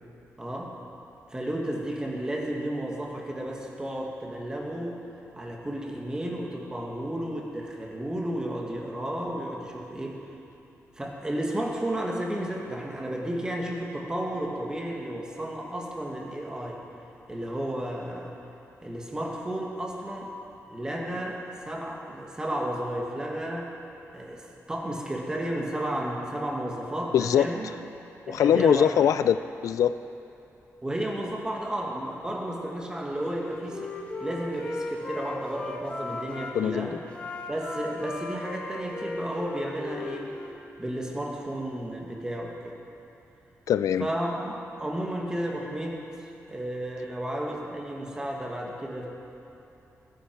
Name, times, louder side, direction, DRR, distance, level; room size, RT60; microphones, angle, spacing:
voice 1, 0.4-0.7 1.3-5.0 5.3-10.2 11.0-16.8 17.3-18.3 18.8-20.3 20.7-23.7 24.1-27.7 28.3-29.1 30.8-33.9 34.2-37.0 37.5-40.3 40.8-42.7 44.0-49.1, right 1 dB, 15° right, -1 dB, 1.7 m, -33 dB
voice 2, 27.1-27.5 28.3-29.9 36.5-37.0 43.7-44.1, left 9 dB, 85° left, 13 dB, 0.3 m, -22 dB
Wind instrument woodwind instrument, 33.2-36.5 37.1-40.6, left 2 dB, 20° left, 1.2 m, -37 dB
20.0 x 10.0 x 4.6 m, 2.9 s
wide cardioid pair, 160°, 6 cm